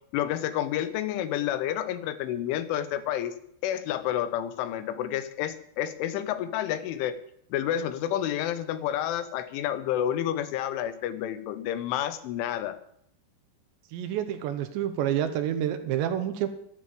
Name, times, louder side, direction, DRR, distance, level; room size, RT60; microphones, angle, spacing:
voice 1, 0.1-3.4 3.6-7.2 7.5-12.8, left 11 dB, 90° left, 12 dB, 3.6 m, -29 dB
voice 2, 13.9-16.5, right 10 dB, 75° right, 10 dB, 3.2 m, -28 dB
13.0 x 10.5 x 8.5 m, 0.70 s
omnidirectional pair, 5.4 m